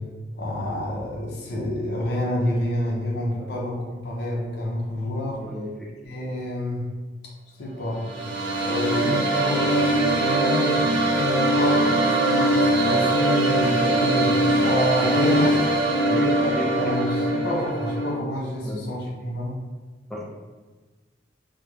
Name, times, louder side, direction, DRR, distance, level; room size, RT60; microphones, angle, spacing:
voice 1, 0.3-5.4 6.0-6.9 7.6-8.0 8.6-10.8 11.1-16.1 16.4-19.5, left 1 dB, 60° left, -3 dB, 0.5 m, -28 dB
voice 2, 5.3-5.9 13.9-14.1 16.0-16.9 18.6-18.9 20.1-20.2, equal, ahead, -3 dB, 0.4 m, -32 dB
sound 1, 7.9-18.1, right 1 dB, 85° right, 0.5 m, -22 dB
2.9 x 2.1 x 2.3 m, 1.3 s
head